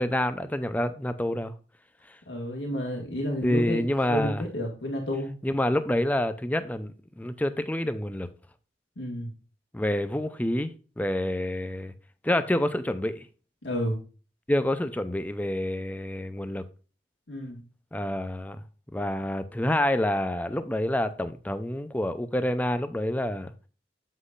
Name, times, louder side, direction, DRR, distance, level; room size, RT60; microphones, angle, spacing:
voice 1, 0.0-1.5 3.4-4.4 5.4-6.9 7.2-8.3 9.7-10.7 11.0-11.9 12.2-13.3 14.5-16.6 17.9-18.6 18.9-23.5, left 1 dB, 10° left, 0.5 m, -27 dB
voice 2, 2.3-3.8 4.1-5.3 9.0-9.3 13.6-14.0 17.3-17.6, equal, 90° left, 1.9 m, -30 dB
8.2 x 7.5 x 2.4 m
head